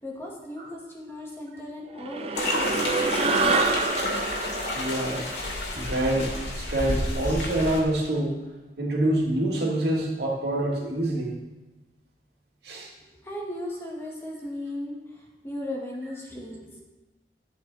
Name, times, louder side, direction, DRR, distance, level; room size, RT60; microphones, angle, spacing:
voice 1, 0.0-3.5 13.2-16.8, left 1 dB, 15° left, -3 dB, 2.0 m, -37 dB
sound 1, 2.0-6.7, right 3 dB, 35° right, 0.7 m, -27 dB
sound 2, 2.3-7.8, left 2 dB, 90° left, 2.5 m, -30 dB
voice 2, 4.7-5.3 5.7-8.3 8.8-11.4 12.6-12.9, right 1 dB, 70° right, -3 dB, 2.8 m, -26 dB
12.0 x 8.2 x 4.2 m, 1.1 s
head